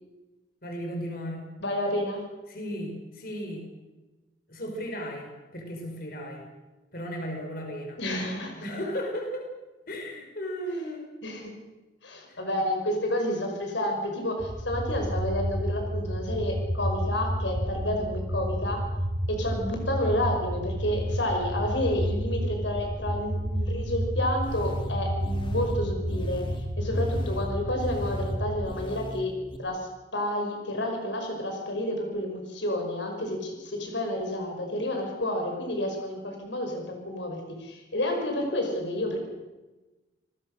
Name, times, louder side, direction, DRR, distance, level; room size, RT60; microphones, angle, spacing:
voice 1, 0.6-1.5 2.5-3.7 4.5-6.4 6.9-8.0 8.6-9.5 9.9-11.1 12.3-12.4, equal, 50° left, 2 dB, 5.6 m, -35 dB
voice 2, 1.6-2.3 8.0-8.6 11.2-11.5 12.0-18.8 19.3-26.5 26.8-29.3 29.6-39.2, left 1 dB, 75° left, 3 dB, 5.6 m, -30 dB
sound 1, 14.4-28.7, equal, 40° right, 4.3 m, -30 dB
sound 2, 24.4-29.6, equal, 25° left, 2.2 m, -39 dB
29.5 x 21.0 x 6.7 m, 1.2 s
head